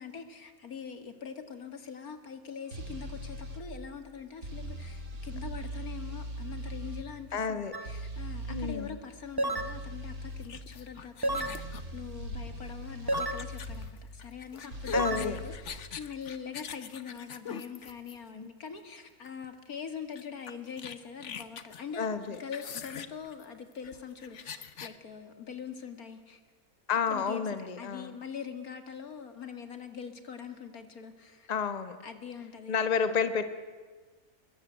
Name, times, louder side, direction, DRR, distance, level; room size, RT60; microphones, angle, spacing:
voice 1, 0.0-26.4 26.9-31.5 32.0-32.8, left 7 dB, 75° left, 8 dB, 2.5 m, -43 dB
sound 1, 2.7-3.6 4.4-7.1 7.9-8.8 9.6-10.5 11.3-13.9 14.7-15.6, right 1 dB, 70° right, 3.5 m, -40 dB
voice 2, 7.3-7.7 8.5-9.0 14.9-15.4 18.3-18.5 22.0-22.4 26.9-28.1 31.5-32.0 32.7-33.4, left 6 dB, 30° left, 10 dB, 1.2 m, -30 dB
sound 2, 7.7-7.9 9.4-9.8 11.2-11.6 13.1-13.5 14.9-15.2, right 1 dB, 15° right, 1.1 m, -30 dB
sound 3, 10.4-18.5 19.3-19.5 19.7-19.8 20.2-25.0, left 7 dB, 55° left, 1.3 m, -43 dB
24.5 x 21.5 x 9.2 m, 1.4 s
omnidirectional pair, 1.6 m